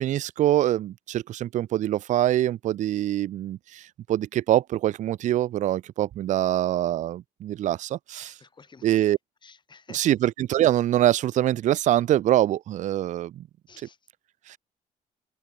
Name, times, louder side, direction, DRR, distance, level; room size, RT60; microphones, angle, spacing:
voice 1, 0.0-3.8 4.1-8.3 8.8-9.2 9.9-13.4, right 13 dB, 55° right, 0.4 m, -24 dB
voice 2, 8.2-9.1 9.4-10.1 13.7-14.0, left 5 dB, 30° left, 2.1 m, -52 dB
cardioid pair, 90°, 15 cm